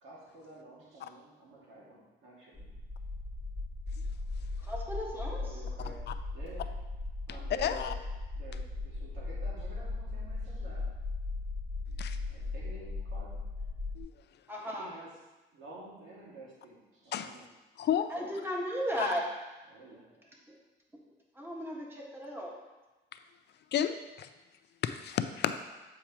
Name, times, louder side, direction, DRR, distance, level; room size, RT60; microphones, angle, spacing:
voice 1, 0.0-2.7 5.4-6.1 6.3-6.7 7.3-7.9 8.3-10.9 12.3-13.7 14.6-15.1 15.5-17.5 19.7-20.4, right 1 dB, 80° right, -6 dB, 2.2 m, -50 dB
sound 1, 2.5-14.0, left 3 dB, 5° left, 1.5 m, -38 dB
voice 2, 4.6-5.4 14.5-14.9 18.1-19.3 21.3-22.5, equal, 10° right, -3 dB, 1.6 m, -35 dB
voice 3, 7.6-7.9 12.0-12.2 14.0-14.1 17.1-17.4 17.8-18.1 19.0-19.1 23.7-24.3 24.8-25.6, left 9 dB, 60° left, 10 dB, 0.4 m, -31 dB
8.3 x 4.8 x 3.0 m, 1.1 s
cardioid pair, 90°, 20 cm